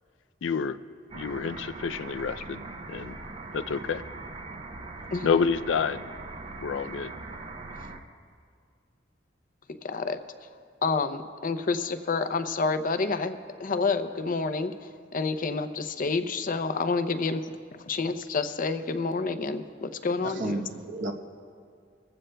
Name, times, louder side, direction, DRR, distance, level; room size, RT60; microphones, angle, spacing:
voice 1, 0.4-0.8 1.1-3.2 3.5-4.0 5.2-6.0 6.6-7.1, left 5 dB, 90° left, 12 dB, 0.4 m, -28 dB
sound 1, 1.1-8.0, right 3 dB, 35° right, 0.7 m, -41 dB
voice 2, 9.8-10.2 10.8-17.6 17.9-20.6, left 4 dB, 45° left, 11 dB, 0.6 m, -29 dB
voice 3, 20.2-21.1, right 2 dB, 85° right, 3 dB, 1.1 m, -32 dB
23.0 x 15.0 x 2.3 m, 2.1 s
head